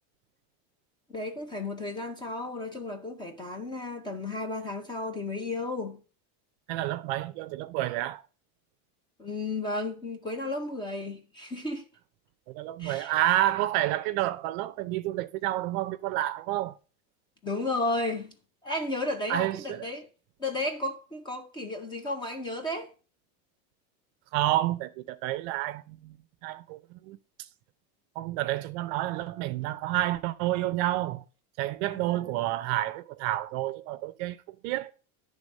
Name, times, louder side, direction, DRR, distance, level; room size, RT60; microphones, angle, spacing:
voice 1, 1.1-6.0 9.2-11.8 12.8-13.1 17.4-18.3 18.6-20.1 20.4-22.9 32.1-32.3, left 2 dB, 10° left, 0.5 m, -33 dB
voice 2, 6.7-8.2 12.5-16.7 19.3-19.9 24.3-26.2 26.4-27.2 28.2-31.2 31.6-34.9, right 15 dB, 50° right, 0.5 m, -29 dB
10.5 x 3.5 x 6.3 m
cardioid pair, 170°, 42 cm